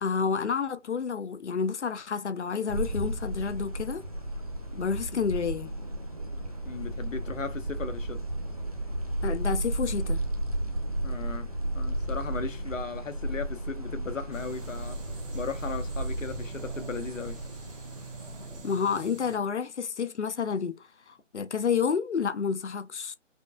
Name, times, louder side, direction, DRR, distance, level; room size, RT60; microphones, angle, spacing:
voice 1, 0.0-4.0 4.7-5.7 9.2-10.2 18.6-23.2, left 6 dB, 65° left, 0.6 m, -30 dB
sound 1, 2.7-18.6, right 1 dB, 30° right, 0.6 m, -33 dB
voice 2, 6.6-8.2 11.0-11.5 11.7-15.0 15.3-17.4, left 5 dB, 85° left, 1.0 m, -37 dB
sound 2, 14.3-19.4, right 4 dB, 45° right, 1.3 m, -44 dB
5.3 x 2.2 x 2.4 m
figure-of-eight pair, 175°, 38 cm